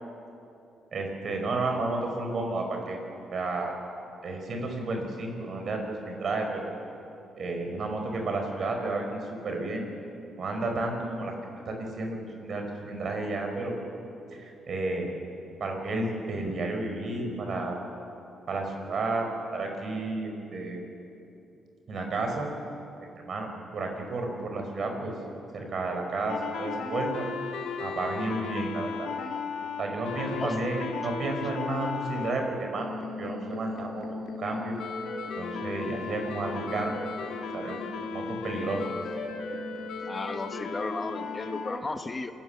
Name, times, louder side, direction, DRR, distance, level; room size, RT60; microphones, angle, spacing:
voice 1, 0.9-3.0 3.3-3.8 4.2-6.7 7.4-9.9 10.4-11.3 11.7-13.8 14.3-15.1 15.6-17.9 18.5-19.3 19.5-20.8 21.9-22.5 23.2-25.1 25.5-27.3 27.8-29.1 29.8-34.1 34.4-34.8 35.4-37.0 37.5-37.8 38.1-38.8, right 2 dB, 55° right, 3 dB, 5.2 m, -32 dB
sound 1, 26.3-32.3 32.8-41.8, left 5 dB, 75° left, 2.5 m, -35 dB
voice 2, 40.1-42.3, left 3 dB, 30° left, 8 dB, 1.3 m, -34 dB
27.5 x 15.0 x 7.3 m, 2.8 s
supercardioid pair, 60°, 0 cm